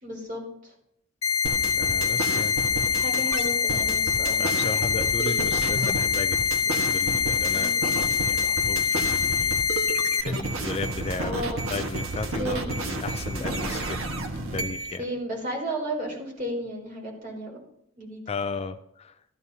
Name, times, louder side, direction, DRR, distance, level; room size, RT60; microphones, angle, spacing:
voice 1, 0.0-0.4 2.7-4.4 7.5-7.9 11.2-11.8 12.4-12.7 13.3-13.5 15.0-17.6 18.0-18.2, right 1 dB, 40° right, -3 dB, 4.4 m, -33 dB
sound 1, 1.2-10.2, left 6 dB, 90° left, 0.6 m, -24 dB
sound 2, 1.4-15.0, right 2 dB, 85° right, 1.5 m, -31 dB
voice 2, 1.7-2.6 4.4-6.4 6.6-7.7 8.0-15.0 18.3-19.2, left 3 dB, 30° left, 8 dB, 0.4 m, -35 dB
14.5 x 14.0 x 2.8 m, 0.78 s
head